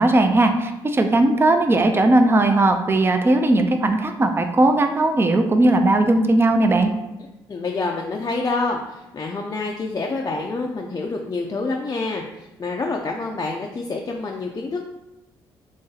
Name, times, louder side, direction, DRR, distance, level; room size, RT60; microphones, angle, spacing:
voice 1, 0.0-6.9, right 2 dB, 25° right, 6 dB, 0.4 m, -18 dB
voice 2, 7.5-14.9, left 3 dB, 35° left, 0 dB, 0.4 m, -27 dB
3.1 x 2.6 x 3.9 m, 0.95 s
supercardioid pair, 55°, 10 cm